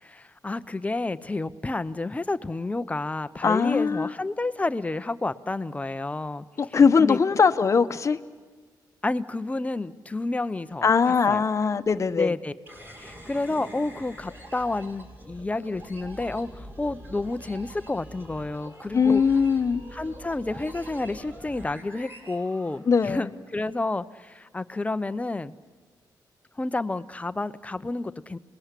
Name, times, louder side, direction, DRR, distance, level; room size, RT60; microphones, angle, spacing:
voice 1, 0.0-6.4 6.7-7.2 9.0-11.4 12.1-12.5 13.0-19.2 19.9-25.5 26.6-28.4, left 2 dB, 20° left, 13 dB, 0.8 m, -30 dB
voice 2, 3.4-4.1 6.6-8.2 10.8-12.3 18.9-19.8 22.9-23.3, left 5 dB, 40° left, 9 dB, 1.1 m, -21 dB
sound 1, 12.7-23.3, equal, 30° right, 6.0 m, -45 dB
29.5 x 20.5 x 8.4 m, 1.4 s
cardioid pair, 85°, 8 cm